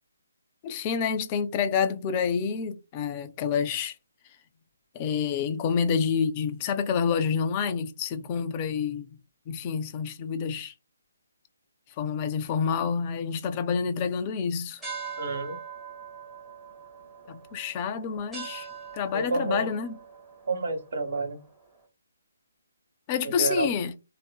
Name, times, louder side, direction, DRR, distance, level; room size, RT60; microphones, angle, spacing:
voice 1, 0.6-4.0 4.9-9.1 9.5-10.7 12.0-14.8 17.3-18.7 18.9-20.0 23.1-23.9, left 6 dB, 25° left, 0.3 m, -28 dB
sound 1, 14.8-21.7, right 6 dB, 5° right, 0.7 m, -42 dB
voice 2, 15.2-15.6 19.1-19.7 20.5-21.4 23.2-23.7, right 3 dB, 55° right, 0.8 m, -29 dB
2.7 x 2.4 x 2.2 m
figure-of-eight pair, 145°, 0 cm